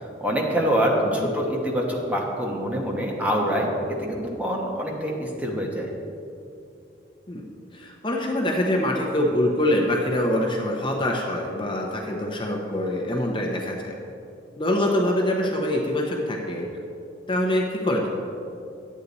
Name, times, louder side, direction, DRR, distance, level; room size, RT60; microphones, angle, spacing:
voice 1, 0.2-5.9, equal, 10° right, -2 dB, 1.1 m, -25 dB
voice 2, 7.7-13.9 14.6-16.7 17.3-18.1, left 1 dB, 30° left, 0 dB, 0.9 m, -24 dB
10.0 x 8.4 x 4.1 m, 2.6 s
head